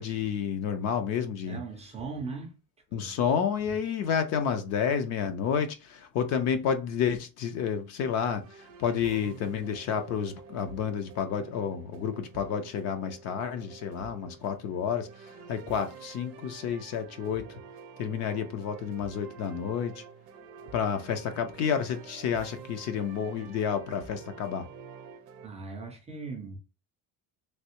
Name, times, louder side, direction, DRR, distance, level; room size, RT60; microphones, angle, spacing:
voice 1, 0.0-1.6 2.9-17.6 18.0-20.0 20.7-24.7, left 7 dB, 45° left, 0.4 m, -30 dB
voice 2, 1.5-2.6 2.9-3.2 25.4-26.6, right 4 dB, 20° right, 0.3 m, -39 dB
sound 1, 8.4-25.5, right 5 dB, 70° right, 0.6 m, -48 dB
3.2 x 2.7 x 2.9 m
cardioid pair, 175°, 39 cm